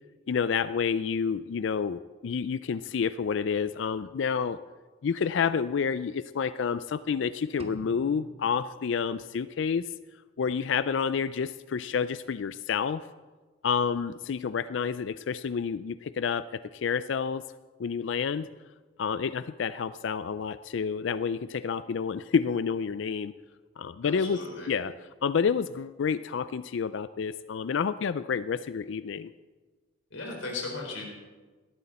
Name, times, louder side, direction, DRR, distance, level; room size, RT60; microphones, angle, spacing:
voice 1, 0.3-4.6 5.0-9.8 10.4-13.0 13.6-17.4 17.8-18.5 19.0-23.3 23.8-24.4 24.7-24.9 25.2-29.3, left 6 dB, 65° left, 15 dB, 0.4 m, -29 dB
sound 1, 7.6-9.6, right 1 dB, 30° right, 1.0 m, -48 dB
voice 2, 24.0-24.7 30.1-31.1, left 3 dB, 85° left, 0 dB, 4.5 m, -36 dB
18.0 x 12.5 x 4.2 m, 1.3 s
head